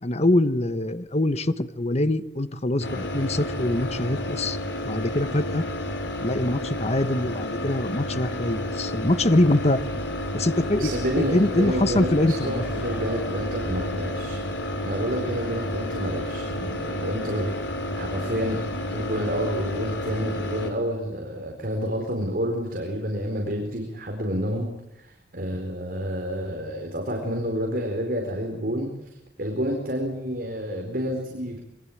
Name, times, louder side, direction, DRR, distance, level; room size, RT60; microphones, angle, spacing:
voice 1, 0.0-4.6 4.8-5.6 6.2-9.8 10.3-12.6, left 1 dB, 40° left, 11 dB, 1.3 m, -24 dB
sound 1, 2.8-20.7, left 1 dB, 90° left, 4.8 m, -31 dB
Bus, 9.4-14.4, equal, 5° right, 7.5 m, -41 dB
voice 2, 10.8-14.4 14.8-18.6 18.9-29.1 29.4-31.6, equal, 55° right, 2 dB, 4.7 m, -29 dB
27.5 x 22.5 x 8.8 m, 0.87 s
head